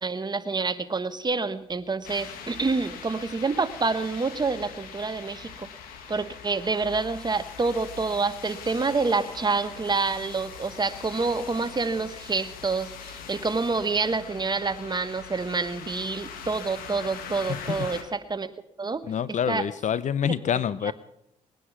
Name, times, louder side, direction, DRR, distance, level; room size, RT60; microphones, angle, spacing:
voice 1, 0.0-5.7 6.1-18.5 18.8-19.0 19.3-19.6 20.2-20.3 20.8-20.9, right 4 dB, 30° right, 11 dB, 1.2 m, -27 dB
sound 1, 2.0-18.0, left 7 dB, 90° left, 1.6 m, -42 dB
voice 2, 17.5-17.9 19.1-20.9, left 8 dB, 55° left, 18 dB, 0.7 m, -27 dB
20.0 x 9.9 x 5.9 m, 0.76 s
supercardioid pair, 65°, 14 cm